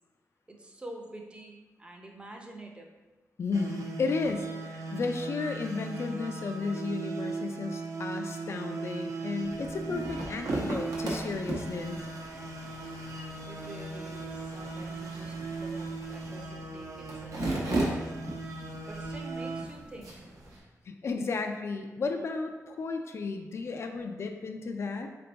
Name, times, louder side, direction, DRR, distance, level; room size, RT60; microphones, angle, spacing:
voice 1, 0.5-2.9 13.5-18.1 18.9-20.3, right 1 dB, 20° right, 1 dB, 0.6 m, -47 dB
voice 2, 3.4-12.0 20.9-25.1, left 4 dB, 50° left, 5 dB, 0.3 m, -33 dB
sound 1, 3.5-19.7, right 3 dB, 70° right, 0.6 m, -38 dB
sound 2, 9.4-20.6, right 2 dB, 85° right, 1.1 m, -37 dB
sound 3, 10.5-16.4, left 2 dB, 65° left, 0.8 m, -54 dB
3.8 x 3.4 x 3.9 m, 1.2 s
wide cardioid pair, 155°, 6 cm